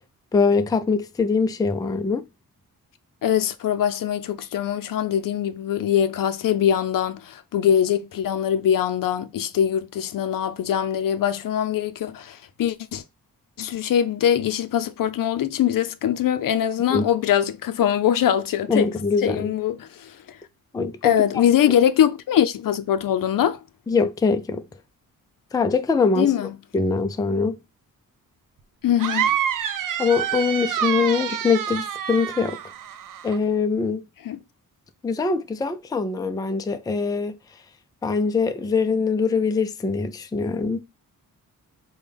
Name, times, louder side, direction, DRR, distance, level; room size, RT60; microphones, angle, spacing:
voice 1, 0.3-2.2 16.9-17.0 18.7-19.5 20.7-21.1 21.7-21.8 23.9-24.6 25.5-26.3 26.7-27.6 30.0-32.6 33.2-34.0 35.0-37.4 38.0-40.8, left 4 dB, 10° left, 0.3 m, -23 dB
voice 2, 3.2-13.0 13.6-18.9 19.2-20.4 21.0-23.6 26.2-26.5 28.8-29.4 31.3-31.4 34.2-34.4, left 9 dB, 70° left, 0.5 m, -22 dB
sound 1, 29.0-33.4, right 9 dB, 60° right, 0.6 m, -27 dB
5.1 x 2.2 x 3.4 m
wide cardioid pair, 120°, 35 cm